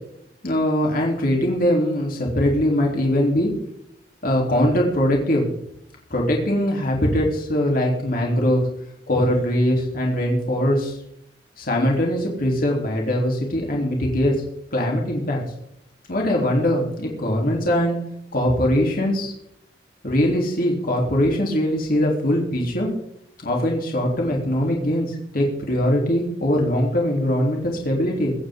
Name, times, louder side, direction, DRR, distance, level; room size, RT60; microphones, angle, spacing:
voice 1, 0.4-3.5 4.2-5.4 6.1-8.6 9.1-11.0 11.6-14.3 14.7-15.4 16.1-18.0 18.3-19.3 20.0-22.9 23.4-28.3, equal, 55° left, -1 dB, 3.5 m, -21 dB
24.0 x 9.4 x 3.9 m, 0.77 s
head